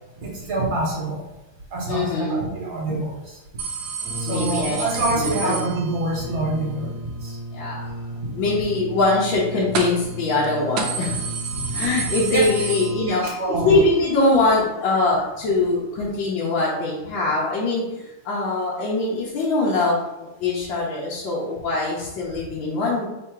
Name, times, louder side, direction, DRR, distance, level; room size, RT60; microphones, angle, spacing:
voice 1, 0.2-1.2 1.7-3.2 4.3-6.9 7.2-7.3 11.5-11.6 12.2-12.5 13.1-13.8, right 2 dB, 55° right, -3 dB, 1.5 m, -26 dB
voice 2, 1.9-2.4 4.3-4.8 5.1-5.5 7.5-7.8 8.3-11.2 11.7-23.1, left 2 dB, 65° left, -6 dB, 1.5 m, -22 dB
sound 1, 3.6-6.3 9.7-10.1 10.4-10.5 10.8-13.5 13.8-13.9 14.9-15.0, right 5 dB, 75° right, 0.9 m, -30 dB
Brass instrument, 4.0-13.3, equal, ahead, 0.5 m, -35 dB
3.8 x 2.7 x 4.5 m, 0.96 s
omnidirectional pair, 2.4 m